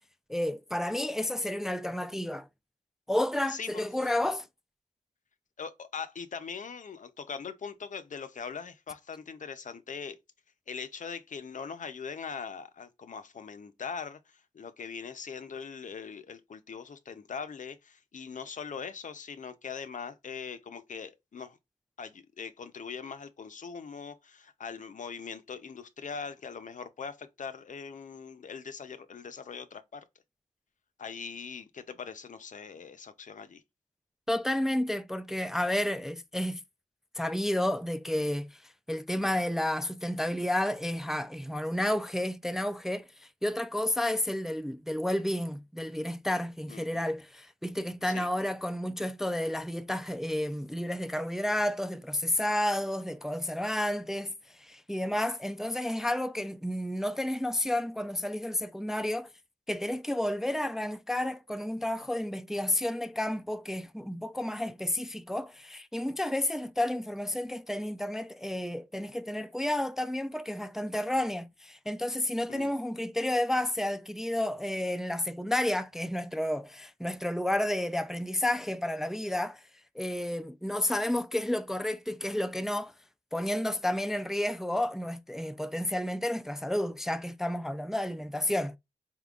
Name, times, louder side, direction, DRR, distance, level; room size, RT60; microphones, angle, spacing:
voice 1, 0.3-2.5 3.1-4.5 34.3-36.6 37.2-59.3 59.7-79.6 79.9-82.9 83.3-88.8, left 1 dB, 5° right, 0.3 m, -31 dB
voice 2, 5.6-10.2 10.7-21.6 22.0-30.0 31.0-33.6 46.7-47.0 48.1-48.3 72.5-72.7, left 6 dB, 60° left, 0.6 m, -41 dB
4.1 x 3.7 x 2.4 m
cardioid pair, 65°, 14 cm